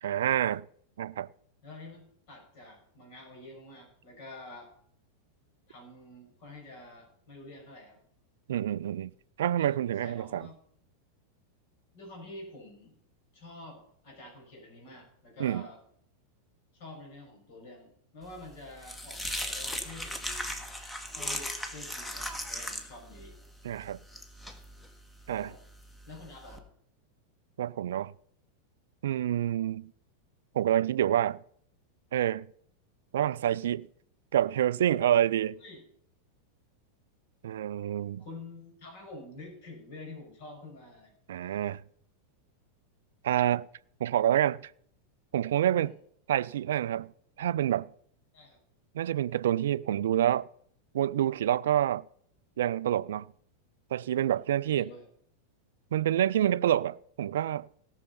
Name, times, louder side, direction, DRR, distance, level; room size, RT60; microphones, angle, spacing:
voice 1, 0.0-0.7 1.0-1.3 8.5-9.1 9.4-10.5 15.4-15.7 23.6-24.0 25.3-25.5 27.6-28.1 29.0-29.9 30.5-31.4 32.1-32.5 33.1-33.9 34.3-35.6 37.4-38.2 41.3-41.8 43.2-43.7 44.0-44.7 45.3-45.9 46.3-47.1 47.4-47.9 48.9-50.5 50.9-52.0 52.6-53.3 53.9-54.9 55.9-57.7, right 11 dB, 60° right, 0.4 m, -27 dB
voice 2, 1.6-4.7 5.7-8.0 9.6-10.6 11.9-12.9 13.3-15.8 16.7-20.6 21.1-23.3 25.3-25.6 26.1-26.6 35.6-35.8 38.2-41.1 45.6-45.9 48.3-48.6 54.6-55.1, left 2 dB, 50° left, 6.1 m, -48 dB
sound 1, 18.3-26.6, left 1 dB, 10° left, 1.5 m, -38 dB
17.5 x 6.6 x 5.7 m
figure-of-eight pair, 90°, 0 cm